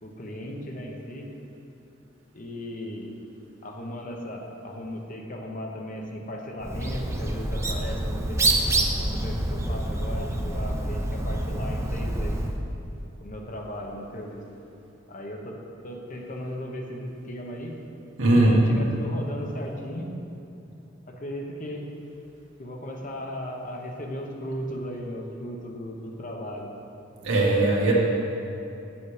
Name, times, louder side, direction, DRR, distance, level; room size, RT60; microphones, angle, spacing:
voice 1, 0.0-1.3 2.3-3.1 3.6-8.6 9.0-12.4 13.2-14.4 15.1-15.5 15.8-17.8 18.4-20.1 21.2-21.8 22.6-26.7, equal, 40° left, 1 dB, 1.0 m, -36 dB
Bird, 6.6-12.6, right 1 dB, 15° right, 0.5 m, -27 dB
voice 2, 18.2-18.6 27.2-27.9, right 2 dB, 70° right, -4 dB, 1.8 m, -19 dB
8.3 x 7.2 x 5.0 m, 2.9 s
head